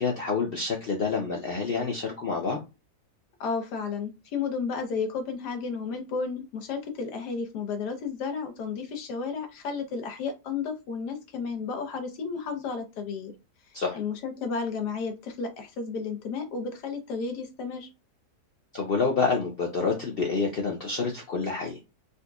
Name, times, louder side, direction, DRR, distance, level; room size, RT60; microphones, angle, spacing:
voice 1, 0.0-2.6 13.7-14.0 18.7-21.8, left 4 dB, 65° left, 0 dB, 0.5 m, -28 dB
voice 2, 3.4-13.3 13.9-17.9, left 5 dB, 85° left, 6 dB, 1.4 m, -32 dB
4.1 x 2.5 x 2.3 m, 0.27 s
omnidirectional pair, 1.7 m